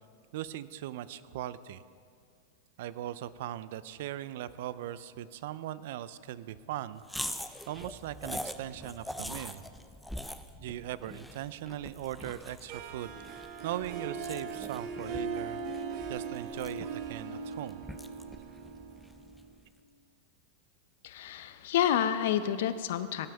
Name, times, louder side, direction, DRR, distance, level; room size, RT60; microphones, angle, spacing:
voice 1, 0.3-1.8 2.8-7.0 7.7-9.6 10.6-15.6 16.1-17.8, right 12 dB, 65° right, 16 dB, 0.4 m, -39 dB
sound 1, 7.0-19.5, left 1 dB, ahead, 0.4 m, -44 dB
Harp, 12.7-19.6, right 5 dB, 50° right, 0.9 m, -39 dB
voice 2, 21.0-23.3, left 10 dB, 70° left, 12 dB, 0.5 m, -29 dB
17.0 x 9.0 x 3.5 m, 2.2 s
hypercardioid pair, 120°, 0 cm